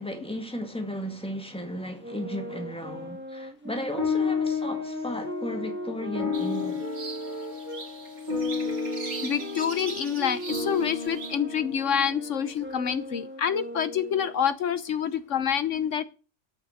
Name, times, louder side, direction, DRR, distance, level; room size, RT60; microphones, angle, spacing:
voice 1, 0.0-6.9, equal, 5° left, 2.0 m, -35 dB
Wind instrument woodwind instrument, 2.0-7.8 8.6-14.4, right 1 dB, 10° right, 0.6 m, -39 dB
sound 1, 4.0-12.6, left 5 dB, 35° right, 2.6 m, -32 dB
sound 2, 6.3-11.4, right 4 dB, 85° right, 2.1 m, -41 dB
voice 2, 9.2-16.0, left 8 dB, 75° left, 1.2 m, -27 dB
12.5 x 7.2 x 6.5 m
omnidirectional pair, 1.3 m